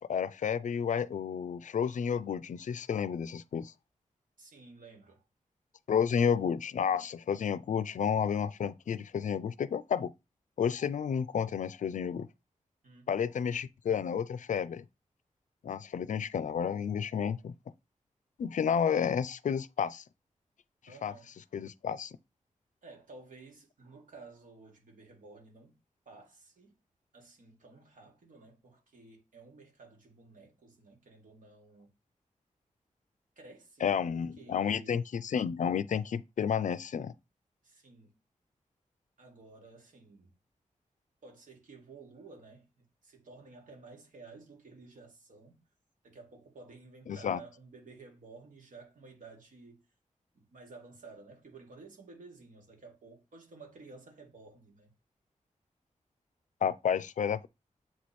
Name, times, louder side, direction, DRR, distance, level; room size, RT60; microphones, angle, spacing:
voice 1, 0.0-3.7 5.9-10.1 10.6-12.3 13.1-14.8 15.6-17.5 18.4-20.0 21.0-21.1 21.5-22.2 33.8-37.1 47.1-47.4 56.6-57.5, left 7 dB, 70° left, 0.4 m, -31 dB
voice 2, 4.4-5.2 12.8-13.3 20.9-21.4 22.8-25.8 26.1-26.8 27.1-31.9 33.4-35.0 37.6-38.2 39.2-40.4 41.2-45.6 46.0-49.9 50.3-54.9, right 3 dB, 85° right, 2.0 m, -53 dB
7.4 x 3.1 x 4.2 m
wide cardioid pair, 80°, 13 cm